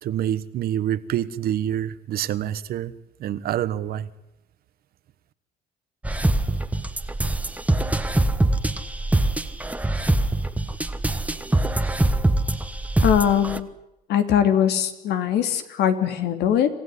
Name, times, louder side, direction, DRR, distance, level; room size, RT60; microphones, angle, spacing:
voice 1, 0.0-2.9 3.2-4.1, right 11 dB, 65° right, 14 dB, 1.4 m, -26 dB
sound 1, 6.0-13.6, right 2 dB, 10° right, 1.4 m, -23 dB
voice 2, 13.0-13.7 14.1-16.7, left 9 dB, 75° left, 8 dB, 2.9 m, -21 dB
27.5 x 15.5 x 9.8 m, 0.90 s
cardioid pair, 110°, 17 cm